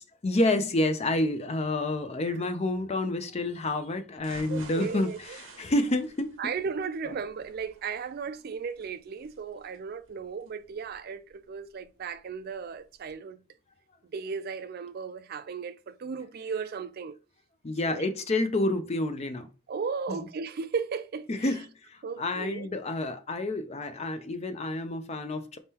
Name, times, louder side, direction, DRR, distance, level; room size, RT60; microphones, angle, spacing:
voice 1, 0.0-5.1 5.6-6.5 17.6-19.5 20.1-20.2 21.3-25.6, left 2 dB, 30° left, 0.5 m, -29 dB
sound 1, 4.2-12.1 12.5-12.6 13.0-13.1, right 3 dB, 65° right, 1.1 m, -52 dB
voice 2, 4.5-5.4 6.4-13.4 14.1-17.2 17.8-18.0 19.7-21.5 22.0-22.7, right 5 dB, 45° right, 0.4 m, -35 dB
4.2 x 3.6 x 2.8 m
head